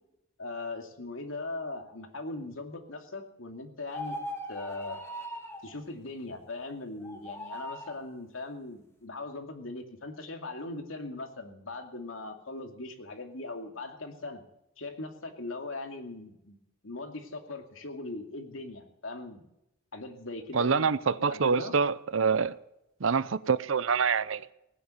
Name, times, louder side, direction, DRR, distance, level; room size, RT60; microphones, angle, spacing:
voice 1, 0.4-4.2 4.5-5.0 5.6-14.4 14.8-16.6 16.8-19.4 19.9-21.7, left 2 dB, 90° left, 2.4 m, -40 dB
sound 1, 3.9-5.7 7.0-8.0, equal, 15° left, 1.9 m, -39 dB
voice 2, 20.5-22.6 23.0-24.5, right 5 dB, 75° right, 0.6 m, -26 dB
17.5 x 9.6 x 8.1 m
head